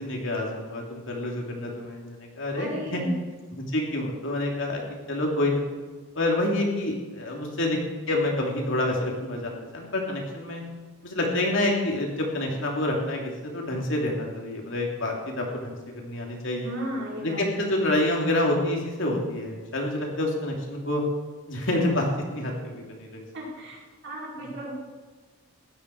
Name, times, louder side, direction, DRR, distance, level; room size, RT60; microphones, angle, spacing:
voice 1, 0.0-3.0 3.5-4.8 5.1-5.7 6.1-7.8 8.1-10.6 11.0-16.7 17.2-21.0 21.5-23.3 24.4-24.5, left 1 dB, 60° left, 0 dB, 2.9 m, -28 dB
voice 2, 2.6-3.1 16.6-17.8 23.3-23.8 24.0-24.7, equal, 55° right, -5 dB, 5.0 m, -35 dB
16.5 x 12.0 x 4.8 m, 1.3 s
head